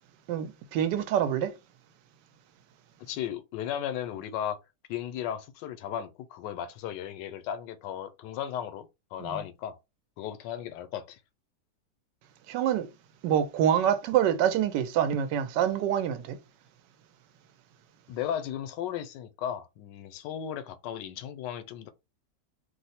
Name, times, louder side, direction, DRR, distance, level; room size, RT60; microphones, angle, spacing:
voice 1, 0.3-1.5 9.2-9.4 12.5-12.9 13.2-16.4, right 9 dB, 90° right, 1.2 m, -26 dB
voice 2, 3.0-4.6 4.9-9.8 10.2-11.2 18.1-21.9, left 10 dB, 85° left, 1.2 m, -35 dB
3.0 x 2.0 x 4.1 m
omnidirectional pair, 1.8 m